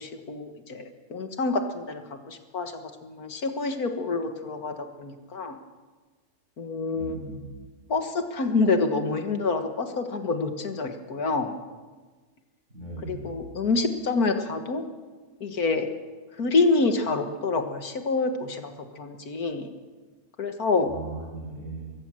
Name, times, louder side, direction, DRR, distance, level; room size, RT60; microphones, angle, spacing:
voice 1, 0.0-2.0 2.3-5.6 6.6-7.2 7.9-11.6 13.0-14.8 15.4-15.9 16.4-19.7 20.4-20.9, left 3 dB, 65° left, 7 dB, 2.0 m, -27 dB
voice 2, 6.9-7.6 12.7-13.4 20.8-21.9, right 3 dB, 45° right, -2 dB, 7.9 m, -38 dB
23.5 x 15.0 x 7.7 m, 1.3 s
omnidirectional pair, 1.7 m